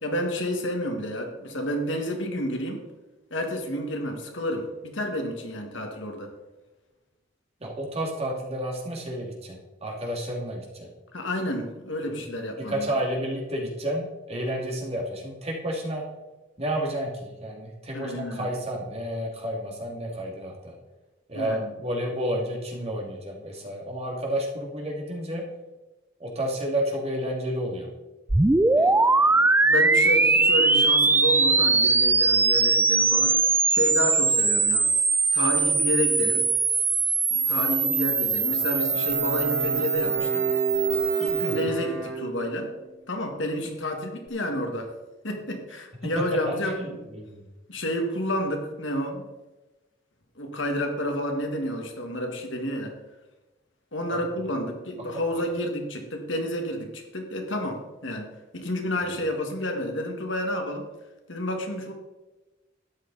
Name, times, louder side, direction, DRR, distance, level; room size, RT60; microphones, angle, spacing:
voice 1, 0.0-2.8 3.3-6.3 11.1-12.9 17.9-18.5 21.3-21.7 28.7-29.1 29.7-34.9 35.3-36.5 37.3-40.5 41.2-42.7 43.1-44.9 45.2-47.0 47.7-49.3 50.4-53.0 53.9-60.9 61.3-61.9, left 1 dB, 65° left, 3 dB, 1.9 m, -30 dB
voice 2, 7.6-10.9 12.7-16.0 16.6-20.7 21.3-25.4 26.2-27.9 41.4-41.7 46.8-47.4 54.1-54.2 55.1-55.2, right 1 dB, 30° right, -1 dB, 2.5 m, -31 dB
sound 1, 28.3-41.6, right 3 dB, 10° right, 0.3 m, -21 dB
Bowed string instrument, 38.4-42.8, right 5 dB, 70° right, 1.5 m, -30 dB
12.5 x 9.5 x 4.1 m, 1.1 s
head